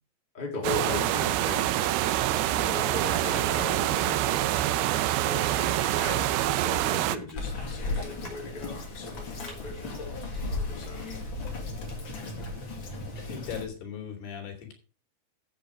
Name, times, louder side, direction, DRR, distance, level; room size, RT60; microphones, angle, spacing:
voice 1, 0.3-1.8 2.5-4.4 5.2-10.0 10.5-11.1, left 2 dB, 15° left, -1 dB, 3.0 m, -37 dB
sound 1, 0.6-7.2, right 14 dB, 80° right, 2.6 m, -26 dB
sound 2, 5.4-5.7 6.4-6.7 7.3-7.4 8.2-8.5 9.5-9.6 10.3-11.0 11.9-12.5 13.5-13.8, left 1 dB, 10° right, 5.1 m, -49 dB
Bird vocalization bird call bird song, 7.4-13.6, left 2 dB, 35° left, 2.7 m, -35 dB
voice 2, 13.2-14.7, left 7 dB, 80° left, 2 dB, 4.9 m, -38 dB
10.5 x 8.4 x 4.9 m, 0.35 s
omnidirectional pair, 4.5 m